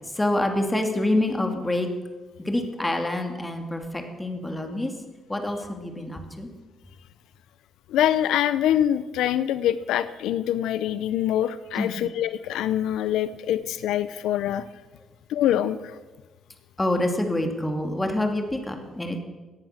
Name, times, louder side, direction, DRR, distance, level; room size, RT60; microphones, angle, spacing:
voice 1, 0.1-1.9 2.4-4.9 5.3-6.5 11.7-12.0 16.8-19.2, left 1 dB, 15° left, 4 dB, 2.5 m, -26 dB
voice 2, 7.9-14.6 15.3-16.0, left 11 dB, 85° left, 14 dB, 0.6 m, -24 dB
17.5 x 10.5 x 6.6 m, 1.2 s
cardioid pair, 90°, 0 cm